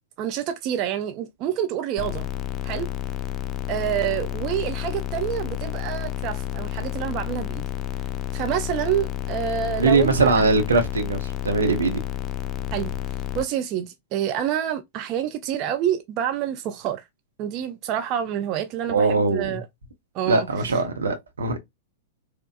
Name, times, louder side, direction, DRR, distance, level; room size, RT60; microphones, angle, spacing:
voice 1, 0.2-2.3 2.6-2.9 3.7-7.6 8.3-10.4 12.7-12.9 13.3-17.1 17.4-19.7 20.1-20.8, right 10 dB, 35° right, 0.5 m, -27 dB
sound 1, 2.0-13.4, left 12 dB, 30° left, 0.4 m, -30 dB
voice 2, 9.8-12.0 18.9-19.6 20.3-21.6, right 3 dB, 70° right, 1.0 m, -21 dB
4.5 x 2.4 x 2.4 m
figure-of-eight pair, 100°, 0 cm